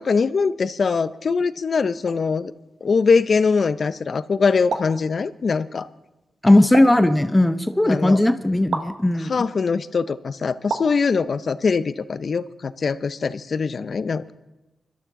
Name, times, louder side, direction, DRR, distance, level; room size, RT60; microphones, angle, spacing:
voice 1, 0.0-2.5 2.8-5.9 7.9-8.2 9.2-14.3, left 5 dB, 60° left, 15 dB, 0.5 m, -22 dB
sound 1, 4.7-5.0 6.7-7.1 8.7-9.0 10.7-11.0, right 4 dB, 75° right, 1.2 m, -28 dB
voice 2, 6.4-9.4, left 1 dB, 15° left, 10 dB, 0.8 m, -17 dB
25.0 x 12.0 x 3.7 m, 1.0 s
cardioid pair, 70°, 0 cm